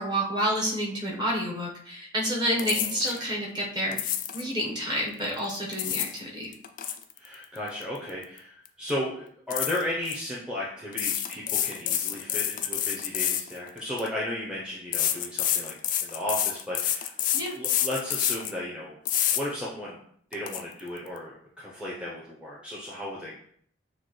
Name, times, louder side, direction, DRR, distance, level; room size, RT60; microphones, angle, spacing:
voice 1, 0.0-6.5 17.3-17.6, equal, 25° right, -3 dB, 1.0 m, -29 dB
sound 1, 2.6-3.2 3.9-4.5 5.5-6.2 6.5-8.4 8.7-8.9 9.5-10.2 10.9-14.1 14.9-18.6 19.1-19.4 19.9-20.0 20.3-20.6, left 10 dB, 45° left, 0.3 m, -28 dB
voice 2, 7.2-15.7 16.0-17.1 17.5-19.0 19.3-20.0 20.3-23.4, left 1 dB, 5° right, -6 dB, 0.7 m, -35 dB
6.4 x 2.3 x 3.1 m, 0.63 s
head